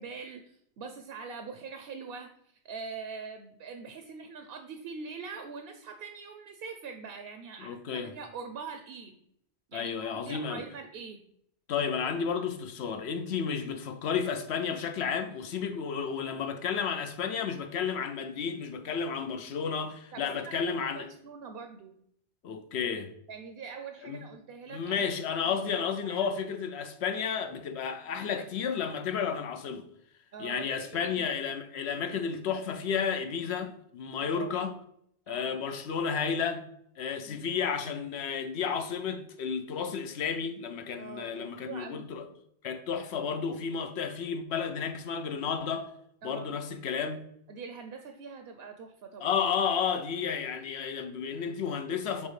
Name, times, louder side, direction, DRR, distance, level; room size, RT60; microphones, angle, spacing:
voice 1, 0.0-2.3 2.6-9.1 9.7-11.2 20.1-21.9 23.3-25.1 25.4-25.6 26.0-26.3 30.3-31.3 34.2-34.5 35.3-35.6 37.2-37.5 41.0-42.3 46.2-46.6 47.5-49.4, right 5 dB, 65° right, 0.8 m, -43 dB
voice 2, 7.6-8.1 9.7-10.6 11.7-21.1 22.4-23.1 24.0-24.2 24.7-29.9 30.4-34.7 35.3-36.7 37.0-42.3 42.6-45.9 46.2-47.2 49.2-52.3, left 6 dB, 75° left, 0.9 m, -32 dB
7.2 x 4.1 x 3.2 m
omnidirectional pair, 1.1 m